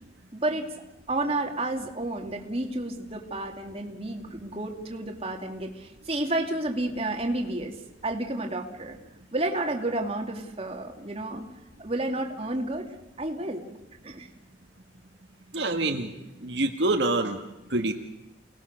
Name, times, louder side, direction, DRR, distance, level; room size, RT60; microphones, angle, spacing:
voice 1, 0.3-0.7 1.1-7.7 8.0-9.0 9.3-11.4 11.8-12.9 13.2-13.7 14.0-14.3, right 2 dB, 30° right, 3 dB, 2.4 m, -31 dB
voice 2, 15.5-16.1 16.4-17.4 17.7-17.9, right 2 dB, 65° right, 4 dB, 1.8 m, -26 dB
29.5 x 19.0 x 6.6 m, 0.93 s
head